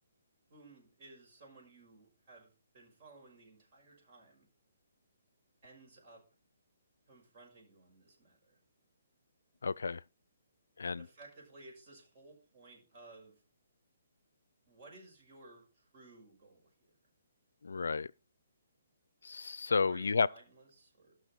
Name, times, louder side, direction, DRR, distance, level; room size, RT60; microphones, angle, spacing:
voice 1, 0.5-4.5 5.6-6.2 7.1-8.6 10.9-13.4 14.7-17.0 19.9-21.1, right 2 dB, 40° right, 5.8 m, -57 dB
voice 2, 9.6-10.0 10.8-11.1 17.6-18.1 19.2-20.3, left 4 dB, 80° left, 0.4 m, -32 dB
13.0 x 6.1 x 4.5 m
hypercardioid pair, 150°, 0 cm